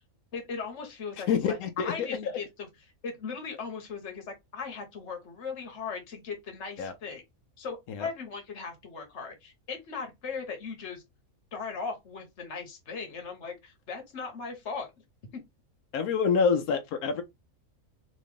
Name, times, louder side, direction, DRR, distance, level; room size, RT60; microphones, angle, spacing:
voice 1, 0.3-2.7 3.0-7.2 7.6-11.0 11.5-14.9 15.3-15.4, left 5 dB, 55° left, 1.3 m, -38 dB
voice 2, 1.3-2.4 6.8-6.9 7.9-8.1 15.9-17.2, left 6 dB, 90° left, 1.1 m, -27 dB
3.0 x 3.0 x 3.4 m
omnidirectional pair, 1.5 m